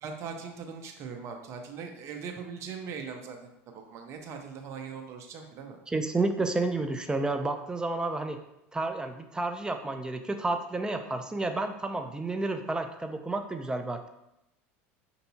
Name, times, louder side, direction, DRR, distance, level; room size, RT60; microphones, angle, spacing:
voice 1, 0.0-5.8, right 6 dB, 45° right, 3 dB, 0.6 m, -40 dB
voice 2, 5.9-8.4 8.7-14.1, right 2 dB, 10° right, 6 dB, 0.3 m, -31 dB
5.3 x 2.7 x 2.7 m, 0.85 s
supercardioid pair, 110°, 7 cm